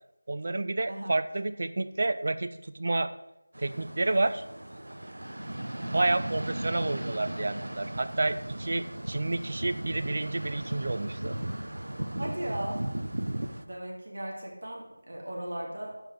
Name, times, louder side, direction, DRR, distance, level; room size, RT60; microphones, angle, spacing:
voice 1, 0.3-3.1 3.6-4.4 5.9-11.3, right 2 dB, 40° right, 11 dB, 0.5 m, -29 dB
sound 1, 3.5-13.6, right 1 dB, 85° right, 0.8 m, -36 dB
voice 2, 12.2-12.8 13.7-16.0, right 1 dB, 60° right, -1 dB, 2.2 m, -37 dB
7.5 x 5.3 x 6.1 m, 0.86 s
figure-of-eight pair, 175°, 0 cm